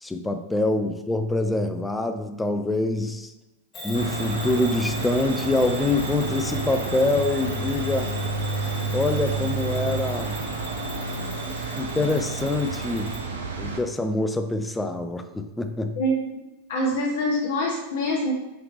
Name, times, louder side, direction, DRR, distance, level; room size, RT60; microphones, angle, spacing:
voice 1, 0.0-3.3 3.8-8.1 8.9-10.4 11.8-13.2 13.6-16.0, left 2 dB, 10° left, 7 dB, 0.4 m, -25 dB
Bell / Alarm, 3.7-13.3, equal, 30° left, 1.3 m, -39 dB
sound 1, 3.9-13.8, right 3 dB, 65° right, 0.6 m, -30 dB
voice 2, 16.0-16.4 16.7-18.3, equal, 55° left, -3 dB, 0.7 m, -25 dB
5.2 x 2.9 x 3.3 m, 1.0 s
figure-of-eight pair, 90°, 0 cm